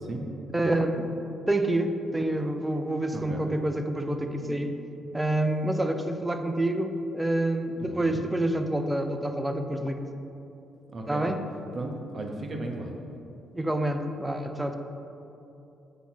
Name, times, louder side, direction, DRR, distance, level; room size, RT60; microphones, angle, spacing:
voice 1, 0.5-1.1 1.5-4.7 5.1-10.0 11.1-11.4 13.5-14.8, right 1 dB, 10° right, 6 dB, 0.5 m, -27 dB
voice 2, 3.1-3.4 7.8-8.2 10.9-11.3 11.7-12.9, right 2 dB, 40° right, 2 dB, 0.9 m, -35 dB
8.1 x 2.8 x 5.9 m, 2.9 s
cardioid pair, 90°, 0 cm